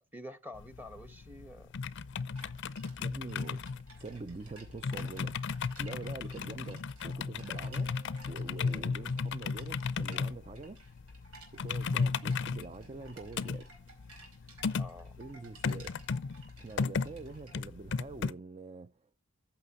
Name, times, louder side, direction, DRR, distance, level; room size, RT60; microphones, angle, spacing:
voice 1, 0.0-1.7 14.7-15.2, left 1 dB, 10° right, 1.0 m, -48 dB
sound 1, 0.5-18.3, left 5 dB, 50° left, 0.5 m, -35 dB
sound 2, 2.3-17.6, right 3 dB, 80° right, 4.6 m, -57 dB
voice 2, 3.0-5.4 5.8-7.9 8.3-10.8 11.5-13.7 15.2-15.9 16.6-19.2, right 3 dB, 25° right, 0.4 m, -45 dB
sound 3, 7.5-10.1, right 5 dB, 65° right, 4.9 m, -62 dB
14.5 x 5.9 x 4.1 m
head